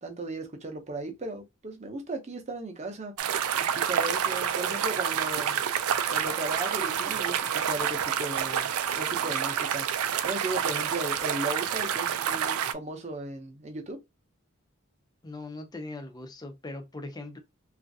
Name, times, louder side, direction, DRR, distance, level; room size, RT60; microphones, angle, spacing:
voice 1, 0.0-3.1 3.6-5.6 6.1-8.7 9.0-9.9 10.2-14.0, right 2 dB, 30° right, 0.6 m, -36 dB
sound 1, 3.2-12.7, right 8 dB, 85° right, 0.4 m, -28 dB
voice 2, 15.2-17.4, left 2 dB, 20° left, 0.5 m, -40 dB
3.0 x 2.4 x 2.6 m
head